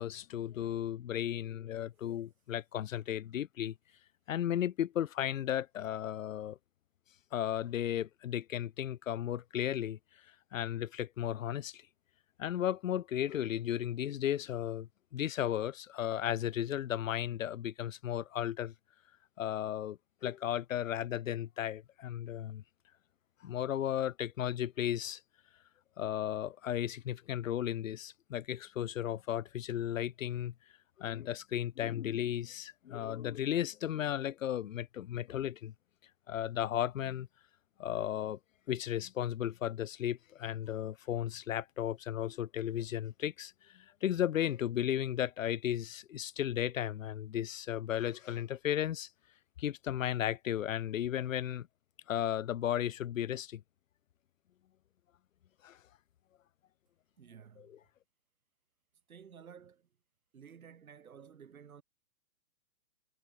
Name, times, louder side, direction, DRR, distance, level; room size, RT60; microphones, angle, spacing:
voice 1, 0.0-3.7 4.3-6.6 7.3-10.0 10.5-11.8 12.4-18.7 19.4-22.6 23.4-25.2 26.0-30.5 31.0-35.7 36.3-37.3 37.8-38.4 38.7-49.1 49.6-51.7 52.1-53.6 55.6-55.8 57.6-57.8, left 11 dB, 70° left, 1.2 m, -35 dB
voice 2, 57.2-57.8 59.1-59.9 60.3-61.8, right 7 dB, 85° right, 4.0 m, -53 dB
hypercardioid pair, 150°, 41 cm